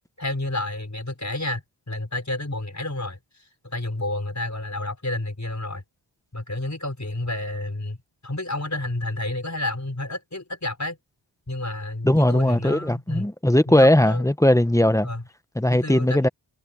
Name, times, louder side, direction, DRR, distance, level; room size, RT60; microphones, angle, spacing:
voice 1, 0.2-3.2 3.6-5.8 6.3-8.0 8.2-11.0 11.5-13.3 13.7-14.3 15.0-15.2 15.7-16.2, left 2 dB, 35° left, 5.1 m, -30 dB
voice 2, 12.0-15.1 15.6-16.3, left 1 dB, 5° left, 0.9 m, -19 dB
wide cardioid pair, 70°, 47 cm